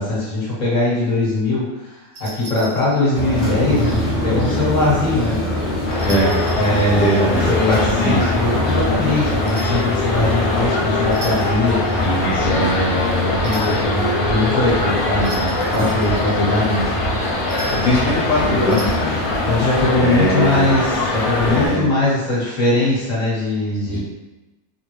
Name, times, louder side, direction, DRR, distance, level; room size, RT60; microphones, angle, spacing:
voice 1, 0.0-5.4 6.5-11.8 12.4-16.9 19.5-24.0, left 2 dB, 30° left, -8 dB, 1.3 m, -21 dB
sound 1, 2.1-3.6 5.9-7.8 9.4-9.9 11.0-11.6 13.4-13.8 15.2-16.4 17.5-18.0 18.6-18.8, equal, 75° right, 1.1 m, -37 dB
sound 2, 3.1-21.7, left 1 dB, 50° left, 1.0 m, -25 dB
sound 3, 5.9-21.7, left 2 dB, 90° left, 1.1 m, -23 dB
voice 2, 6.0-6.3 6.9-8.2 10.2-10.4 12.0-12.7 15.8-15.9 17.7-19.2 19.9-20.7 21.4-21.9 23.9-24.0, left 1 dB, 75° left, -6 dB, 1.1 m, -21 dB
3.5 x 2.2 x 3.0 m, 1.1 s
omnidirectional pair, 1.4 m